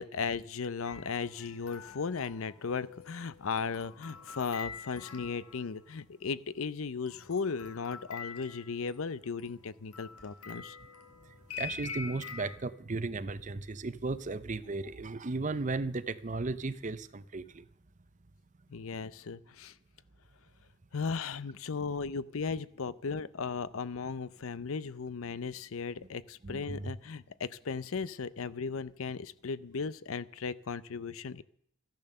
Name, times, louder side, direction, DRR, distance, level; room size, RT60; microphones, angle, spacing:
voice 1, 0.0-10.8 18.7-19.7 20.9-31.4, left 5 dB, 70° left, 0.6 m, -36 dB
sound 1, 0.8-5.9 7.1-12.6, left 6 dB, 90° left, 2.1 m, -46 dB
voice 2, 11.6-17.6 26.4-26.9, right 3 dB, 35° right, 0.6 m, -35 dB
14.0 x 10.5 x 6.7 m
head